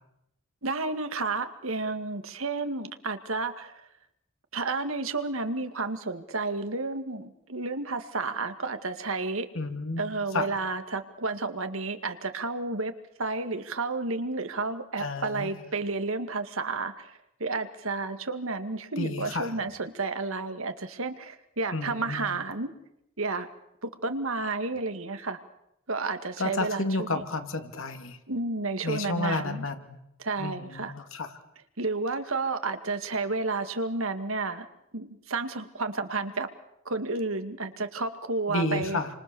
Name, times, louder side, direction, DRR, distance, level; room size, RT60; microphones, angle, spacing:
voice 1, 0.6-3.7 4.5-9.5 10.0-12.9 13.2-17.1 17.4-22.7 23.2-23.5 23.8-25.4 25.9-27.2 28.3-29.7 30.2-30.9 31.8-34.7 34.9-36.5 36.9-39.0, right 3 dB, 75° right, 8 dB, 2.1 m, -31 dB
voice 2, 9.5-10.0 10.3-10.5 15.0-15.5 19.0-19.5 21.7-22.3 26.4-28.2 28.8-30.0 30.4-31.3 38.5-39.1, left 2 dB, 70° left, 6 dB, 2.8 m, -31 dB
29.0 x 25.5 x 7.1 m, 0.81 s
head